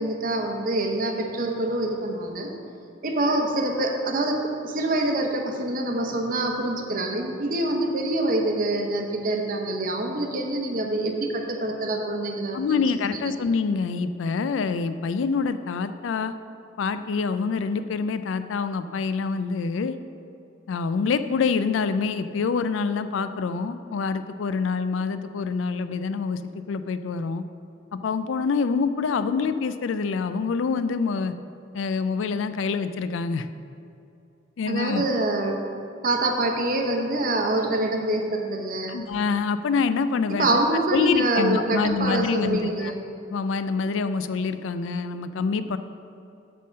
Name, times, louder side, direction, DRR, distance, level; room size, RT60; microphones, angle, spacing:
voice 1, 0.0-2.5 3.0-12.8 13.1-13.2 34.7-35.6 36.0-39.0 40.3-43.0, right 2 dB, 45° right, 2 dB, 0.8 m, -25 dB
voice 2, 12.5-16.3 16.8-20.0 20.7-26.4 26.7-27.4 27.9-31.3 31.7-33.5 34.6-35.0 38.9-40.5 40.9-42.9 43.3-45.8, left 5 dB, 80° left, 11 dB, 0.4 m, -26 dB
8.2 x 3.8 x 6.4 m, 2.6 s
head